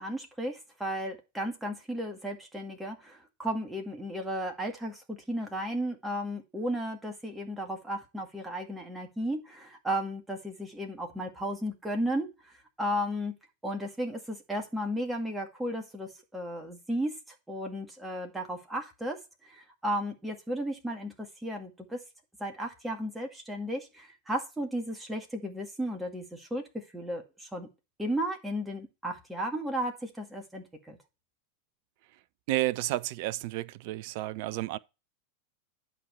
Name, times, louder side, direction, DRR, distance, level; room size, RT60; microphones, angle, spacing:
voice 1, 0.0-12.3 12.8-13.4 13.6-17.1 17.5-19.2 19.4-22.0 22.4-27.7 28.0-31.0, equal, 5° right, 2.0 m, -34 dB
voice 2, 32.5-34.8, right 16 dB, 50° right, 0.5 m, -31 dB
11.5 x 5.1 x 4.6 m
figure-of-eight pair, 90°, 0 cm